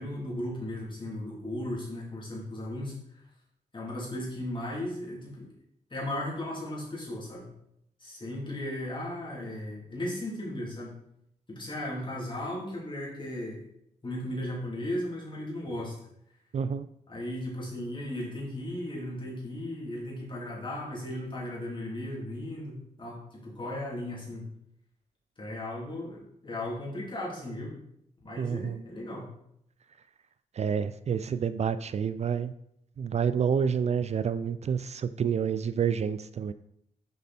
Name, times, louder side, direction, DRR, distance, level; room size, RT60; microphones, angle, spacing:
voice 1, 0.0-3.2 3.7-5.5 5.9-7.5 8.0-10.9 11.5-13.6 14.0-16.0 17.1-24.4 25.4-27.8 28.2-29.3, left 1 dB, 35° left, -4 dB, 3.1 m, -36 dB
voice 2, 16.5-16.9 28.4-28.8 30.5-32.5 33.0-36.5, right 7 dB, 50° right, 13 dB, 0.4 m, -28 dB
6.8 x 5.2 x 4.3 m, 0.76 s
cardioid pair, 70°, 14 cm